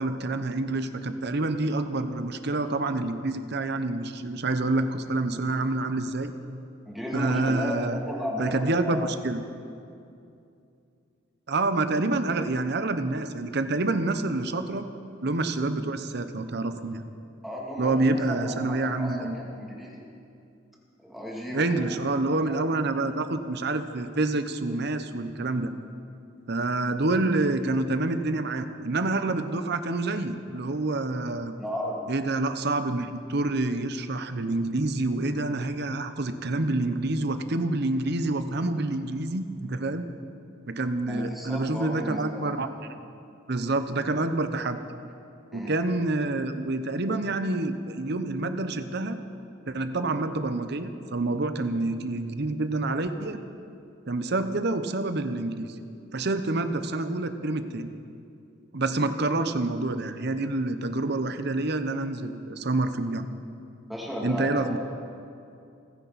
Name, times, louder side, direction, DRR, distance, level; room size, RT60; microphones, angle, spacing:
voice 1, 0.0-6.3 7.1-8.0 8.4-9.4 11.5-14.9 15.2-17.0 17.8-19.3 21.5-25.7 26.5-31.5 32.1-40.1 40.7-42.7 43.5-44.8 45.5-49.2 49.7-53.4 54.1-55.7 56.1-57.9 58.7-63.3 64.2-64.8, right 2 dB, 55° right, 9 dB, 0.8 m, -27 dB
voice 2, 6.8-9.1 17.4-20.0 21.0-22.0 22.5-22.6 31.6-32.0 41.1-42.5 45.5-45.8 63.9-64.8, left 1 dB, ahead, -4 dB, 2.6 m, -34 dB
29.0 x 10.0 x 4.2 m, 2.5 s
head